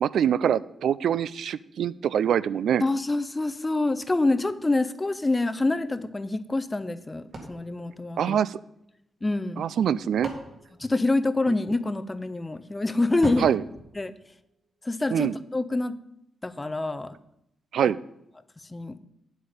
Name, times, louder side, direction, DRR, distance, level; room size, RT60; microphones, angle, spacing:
voice 1, 0.0-2.8 8.2-8.6 9.6-10.3 11.5-11.6 13.4-13.6 15.1-15.4 17.7-18.0, right 9 dB, 80° right, 18 dB, 0.3 m, -24 dB
voice 2, 2.8-8.4 9.2-9.6 10.8-13.5 14.0-14.1 14.8-16.0 16.4-17.1 18.7-19.0, left 2 dB, 15° left, 13 dB, 0.5 m, -26 dB
sound 1, 7.3-8.9 9.7-11.7 13.2-14.8, right 1 dB, 45° right, 1.8 m, -40 dB
9.4 x 8.2 x 5.1 m, 0.83 s
wide cardioid pair, 165°, 0 cm